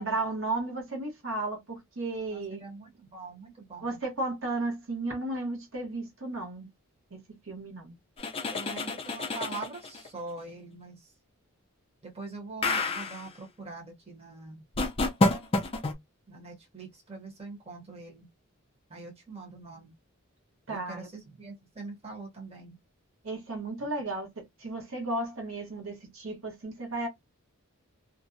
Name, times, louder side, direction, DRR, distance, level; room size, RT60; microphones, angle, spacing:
voice 1, 0.0-2.6 3.8-6.7 7.1-7.2 7.5-7.9 20.7-21.1 23.2-24.3 24.6-27.1, right 2 dB, 60° right, 1.0 m, -34 dB
voice 2, 2.3-4.0 8.5-11.1 12.0-14.6 16.3-18.3 18.9-19.9 20.7-22.8, right 3 dB, 30° right, 0.9 m, -43 dB
sound 1, 8.2-10.1 12.6-13.3 14.8-15.9, left 2 dB, 25° left, 0.4 m, -28 dB
2.5 x 2.1 x 2.5 m
head